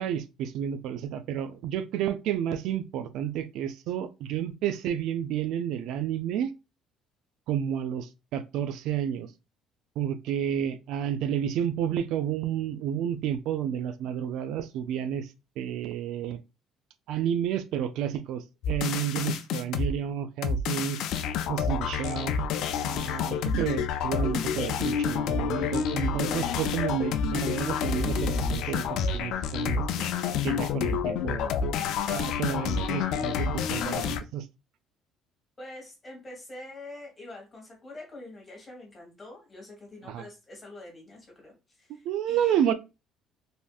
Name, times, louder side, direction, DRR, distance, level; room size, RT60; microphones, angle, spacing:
voice 1, 0.0-6.5 7.5-9.3 10.0-15.3 15.6-16.4 17.1-21.0 21.5-22.3 22.8-30.1 30.4-31.5 32.1-34.5 40.1-40.2 41.9-42.7, right 9 dB, 70° right, 0.3 m, -31 dB
Game Music Alien, 18.6-19.9 20.4-34.2, left 6 dB, 70° left, 0.3 m, -28 dB
voice 2, 35.6-42.6, left 2 dB, 15° left, 1.4 m, -45 dB
3.4 x 2.6 x 2.3 m
cardioid pair, 155°, 0 cm